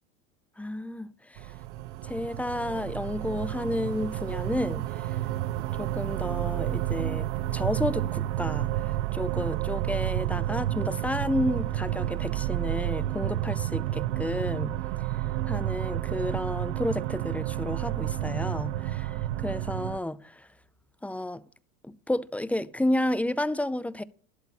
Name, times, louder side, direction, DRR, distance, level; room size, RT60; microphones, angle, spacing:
voice 1, 0.6-1.5 2.0-5.2 5.6-14.8 15.5-20.5 21.0-21.4 21.9-24.0, left 1 dB, 5° left, 0.5 m, -31 dB
sound 1, 1.4-20.0, right 14 dB, 70° right, 0.7 m, -30 dB
12.5 x 11.0 x 4.2 m
supercardioid pair, 115°, 37 cm